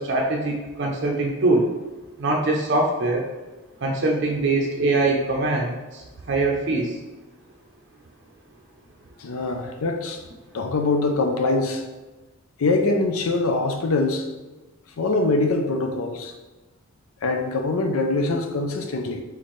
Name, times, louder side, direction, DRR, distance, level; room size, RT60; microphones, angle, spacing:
voice 1, 0.0-1.7 2.2-3.3 3.8-7.0, right 2 dB, 55° right, 0 dB, 0.5 m, -23 dB
voice 2, 9.2-10.2 10.5-11.8 12.6-14.3 15.0-16.3 17.2-19.2, left 3 dB, 85° left, 4 dB, 0.5 m, -23 dB
4.3 x 3.7 x 3.1 m, 1.2 s
head